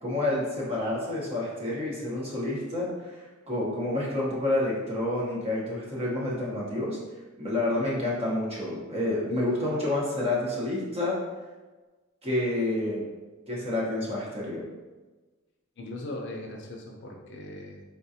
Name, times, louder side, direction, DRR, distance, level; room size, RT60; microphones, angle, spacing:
voice 1, 0.0-2.9 3.5-7.0 7.4-11.2 12.2-13.0 13.5-14.6, left 1 dB, 30° right, -6 dB, 1.0 m, -29 dB
voice 2, 15.8-17.8, left 1 dB, 60° left, 1 dB, 0.5 m, -39 dB
3.8 x 2.5 x 2.7 m, 1.2 s
head